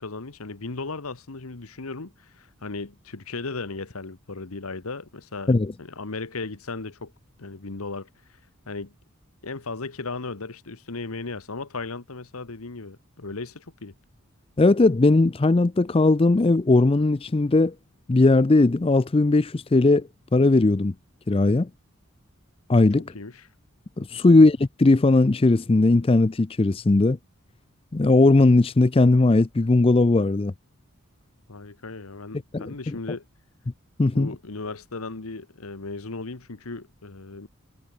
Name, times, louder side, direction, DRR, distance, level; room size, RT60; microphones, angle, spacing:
voice 1, 0.0-5.5 5.8-7.1 7.4-8.1 8.7-8.9 9.4-13.9 23.1-23.5 31.5-33.2 34.1-37.5, left 3 dB, 80° left, 1.3 m, -36 dB
voice 2, 14.6-17.7 18.1-20.9 21.3-21.7 22.7-23.0 24.0-27.2 27.9-30.5 32.5-33.0 34.0-34.3, left 2 dB, 25° left, 0.4 m, -18 dB
head